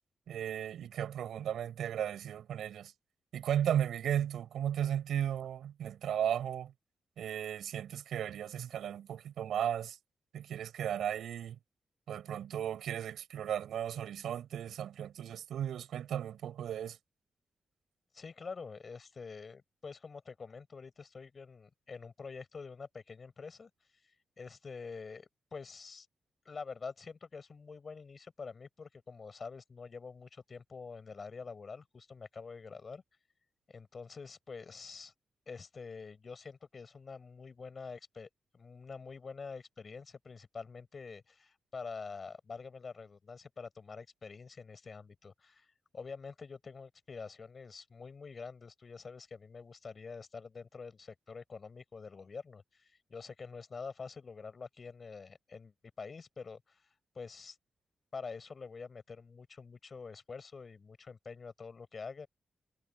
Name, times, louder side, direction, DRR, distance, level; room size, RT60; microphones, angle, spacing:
voice 1, 0.3-2.9 3.3-6.7 7.2-10.0 10.3-11.6 12.1-17.0, right 10 dB, 90° right, 6.3 m, -35 dB
voice 2, 18.1-23.7 24.4-26.1 26.4-33.0 33.7-35.1 35.5-45.7 45.9-56.8 57.1-57.6 58.1-62.3, left 5 dB, 50° left, 6.1 m, -46 dB
cardioid pair, 65°, 0 cm